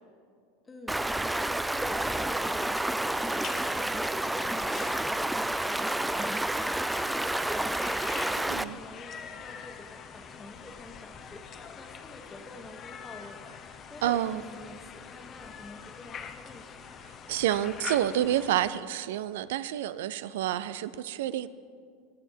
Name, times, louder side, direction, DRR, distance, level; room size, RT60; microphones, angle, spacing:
voice 1, 0.6-16.7, left 2 dB, 20° left, 6 dB, 1.3 m, -47 dB
Stream, 0.9-8.6, right 1 dB, 5° right, 0.3 m, -29 dB
sound 1, 3.1-18.7, left 6 dB, 35° left, 0.8 m, -44 dB
voice 2, 14.0-14.4 17.3-21.5, right 12 dB, 75° right, 15 dB, 0.4 m, -29 dB
19.0 x 7.2 x 4.5 m, 2.1 s
hypercardioid pair, 95°, 0 cm